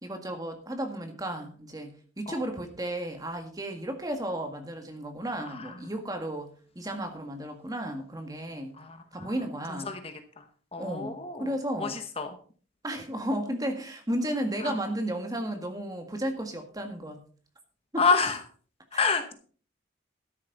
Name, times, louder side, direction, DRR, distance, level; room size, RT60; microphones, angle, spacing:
voice 1, 0.0-6.5 6.7-8.7 9.1-10.0 10.8-11.1 11.4-12.0 12.8-17.2 17.9-18.1, right 1 dB, 20° right, 5 dB, 1.8 m, -33 dB
voice 2, 8.8-9.3 9.9-10.1 10.7-11.5 11.8-12.3 14.6-14.7 18.0-18.4 18.9-19.3, left 5 dB, 30° left, 7 dB, 1.0 m, -27 dB
13.0 x 10.5 x 4.1 m, 0.43 s
head